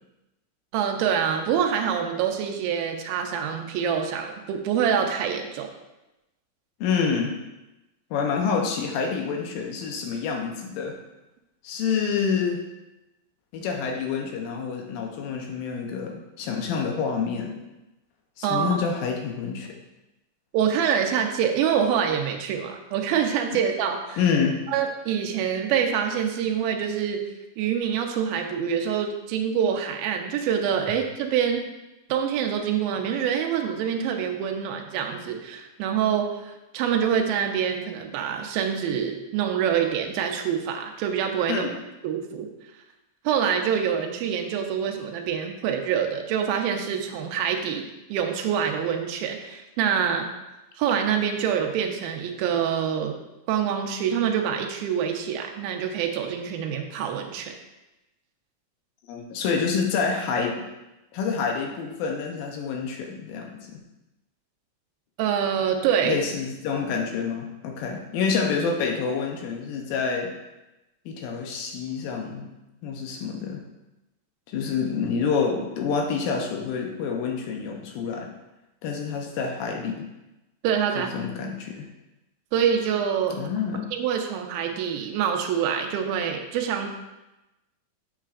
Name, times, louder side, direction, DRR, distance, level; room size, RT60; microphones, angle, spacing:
voice 1, 0.7-5.7 18.4-18.8 20.5-24.2 24.7-27.2 27.6-31.6 32.1-41.7 42.0-42.5 43.2-47.8 48.1-50.3 50.8-53.1 53.5-57.5 65.2-66.2 80.6-81.1 82.5-83.4 83.9-86.9, right 8 dB, 85° right, 3 dB, 2.5 m, -25 dB
voice 2, 6.8-7.4 8.1-11.0 11.6-12.6 13.5-17.5 18.4-19.7 24.2-24.6 41.5-41.7 59.1-60.6 61.1-63.5 66.1-70.3 71.1-72.5 72.8-73.6 74.5-78.3 78.8-80.0 81.0-81.9 83.4-83.8, left 5 dB, 80° left, 2 dB, 2.4 m, -27 dB
7.5 x 7.2 x 2.4 m, 0.99 s
omnidirectional pair, 4.2 m